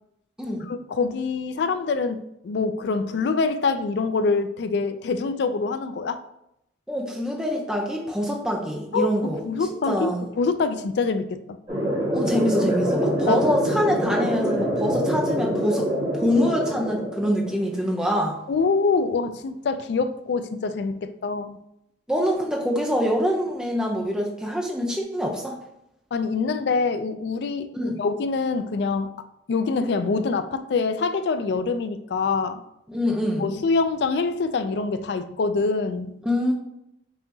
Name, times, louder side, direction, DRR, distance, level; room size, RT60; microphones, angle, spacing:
voice 1, 0.7-6.2 8.9-9.1 9.4-11.6 13.3-13.5 18.5-21.6 26.1-29.1 29.5-32.6 33.4-36.1, left 4 dB, 60° left, 0.3 m, -25 dB
voice 2, 6.9-9.4 9.9-10.3 12.1-18.4 22.1-25.6 27.7-28.0 32.9-33.5 36.2-36.5, equal, 5° right, 0.6 m, -25 dB
sound 1, 11.7-17.7, equal, 25° right, 1.5 m, -25 dB
5.5 x 2.9 x 2.7 m
head